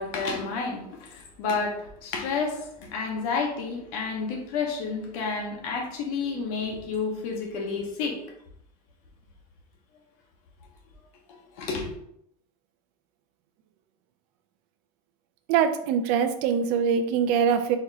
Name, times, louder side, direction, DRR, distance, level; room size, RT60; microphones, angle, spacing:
voice 1, 0.0-8.2 11.6-11.9, left 4 dB, 60° left, 1 dB, 1.2 m, -30 dB
voice 2, 15.5-17.8, right 7 dB, 50° right, 7 dB, 0.5 m, -23 dB
4.5 x 3.6 x 2.7 m, 0.73 s
supercardioid pair, 160°, 20 cm